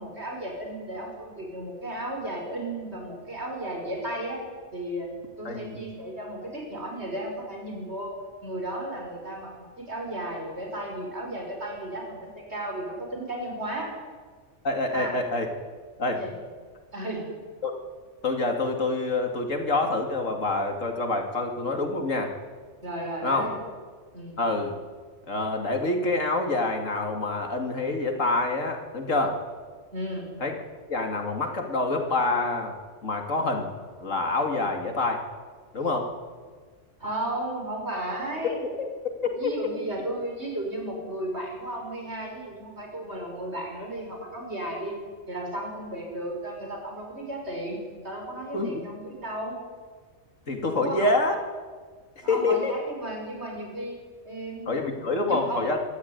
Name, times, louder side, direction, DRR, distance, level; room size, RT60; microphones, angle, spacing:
voice 1, 0.0-4.4 4.7-5.1 5.4-8.2 8.4-13.9 14.9-15.2 16.1-16.3 16.9-17.3 22.8-23.6 24.1-24.3 29.9-30.3 37.0-38.6 39.3-45.0 45.3-49.6 50.7-51.1 52.2-54.0 54.2-55.7, right 1 dB, 60° right, 0 dB, 6.2 m, -34 dB
voice 2, 5.4-5.8 14.6-15.5 16.0-16.2 17.6-17.7 18.2-22.3 23.2-23.5 24.4-24.8 25.3-29.4 30.4-30.5 30.9-32.8 33.0-33.7 34.0-35.2 35.7-36.1 38.8-38.9 39.2-39.5 48.5-48.9 50.5-51.4 52.2-52.7 54.7-55.8, left 2 dB, 85° left, 4 dB, 2.9 m, -26 dB
25.5 x 13.5 x 9.7 m, 1.5 s
omnidirectional pair, 1.3 m